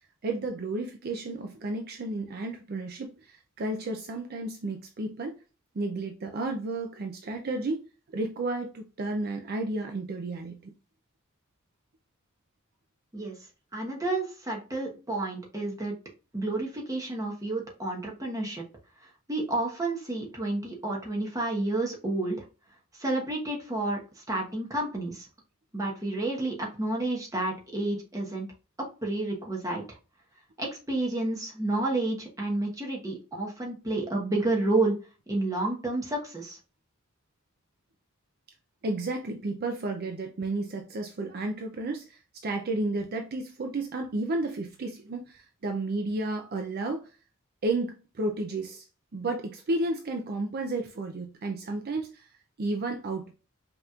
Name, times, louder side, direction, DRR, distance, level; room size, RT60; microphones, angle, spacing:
voice 1, 0.2-5.4 5.7-7.9 8.1-10.7 38.8-47.1 47.6-48.8 49.1-52.3 52.6-53.3, right 2 dB, 45° right, 0.5 m, -32 dB
voice 2, 13.7-15.9 16.3-18.6 19.3-22.4 23.0-25.3 25.7-28.5 28.8-29.8 30.6-34.9 35.3-36.6, right 2 dB, 15° right, 1.1 m, -30 dB
5.2 x 3.0 x 2.4 m
head